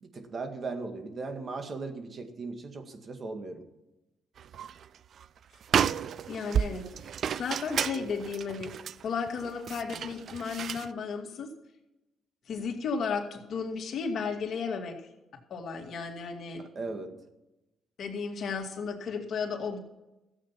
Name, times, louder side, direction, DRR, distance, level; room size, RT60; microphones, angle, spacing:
voice 1, 0.0-3.6 16.8-17.1, right 3 dB, 45° right, 6 dB, 2.0 m, -37 dB
sound 1, 4.4-4.9 5.2-5.3 5.6-10.9, right 8 dB, 60° right, 0.4 m, -32 dB
voice 2, 6.3-6.9 7.4-8.7 9.0-11.5 12.5-15.0 15.5-16.6 18.0-19.8, left 5 dB, 60° left, 2 dB, 2.4 m, -34 dB
14.0 x 8.5 x 5.9 m, 0.96 s
cardioid pair, 90°, 0 cm